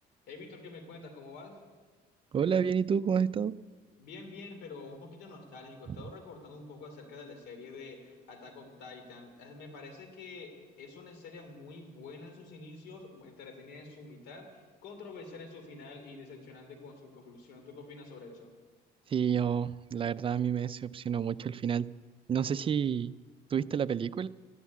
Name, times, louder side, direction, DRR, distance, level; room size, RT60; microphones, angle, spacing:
voice 1, 0.3-1.6 4.0-18.5, left 3 dB, 80° left, 5 dB, 2.8 m, -47 dB
voice 2, 2.3-3.6 19.1-21.9 22.3-23.1 23.5-24.3, right 7 dB, 30° right, 15 dB, 0.4 m, -29 dB
12.5 x 11.0 x 8.4 m, 1.4 s
cardioid pair, 110°, 17 cm